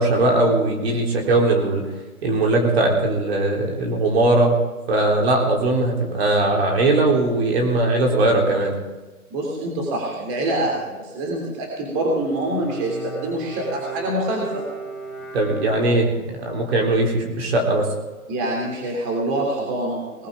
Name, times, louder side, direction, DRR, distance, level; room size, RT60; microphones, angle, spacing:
voice 1, 0.0-1.9 2.2-4.5 4.9-8.7 15.3-17.9, right 2 dB, 45° right, 1 dB, 3.8 m, -19 dB
voice 2, 9.3-14.7 18.3-20.3, right 1 dB, 20° right, -1 dB, 3.1 m, -25 dB
Bowed string instrument, 11.9-16.3, right 3 dB, ahead, 1.8 m, -36 dB
20.0 x 14.5 x 3.8 m, 1.2 s
hypercardioid pair, 155°, 43 cm